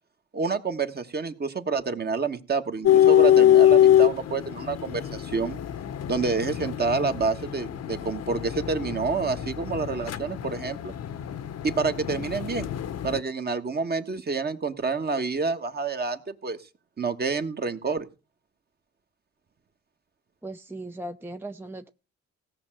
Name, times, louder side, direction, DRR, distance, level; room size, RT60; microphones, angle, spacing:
voice 1, 0.3-5.6 6.1-10.9 11.6-12.7 13.0-16.6 17.0-18.1, right 4 dB, 30° right, 1.4 m, -28 dB
sound 1, 2.8-13.2, left 11 dB, 55° left, 0.9 m, -23 dB
voice 2, 20.4-21.9, right 1 dB, 10° right, 0.6 m, -38 dB
16.5 x 5.6 x 7.6 m
cardioid pair, 90°, 30 cm